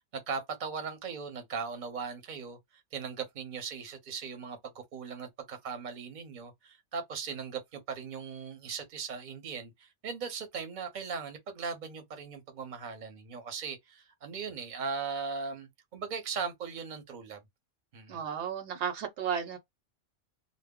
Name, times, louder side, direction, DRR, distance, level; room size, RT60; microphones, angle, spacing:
voice 1, 0.1-2.6 2.9-17.4 17.9-18.2, right 5 dB, 45° right, 0.8 m, -38 dB
voice 2, 18.1-19.6, right 8 dB, 75° right, 0.9 m, -33 dB
2.0 x 2.0 x 3.5 m
omnidirectional pair, 1.2 m